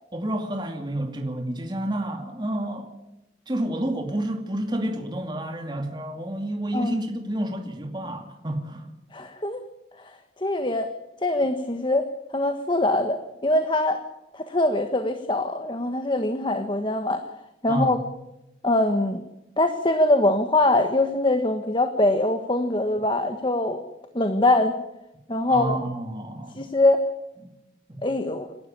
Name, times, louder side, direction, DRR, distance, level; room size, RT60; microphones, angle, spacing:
voice 1, 0.1-2.9 3.5-8.9 17.7-17.9 25.5-26.7 27.4-27.5 27.9-28.0, right 1 dB, 25° right, 4 dB, 2.4 m, -29 dB
voice 2, 9.1-9.6 10.4-10.9 11.2-12.0 12.3-14.0 14.3-17.2 17.6-18.0 18.6-19.2 19.6-23.8 24.1-24.8 25.3-25.8 26.5-27.0 28.0-28.5, left 2 dB, 30° left, 7 dB, 1.4 m, -23 dB
28.5 x 13.0 x 8.8 m, 0.92 s
head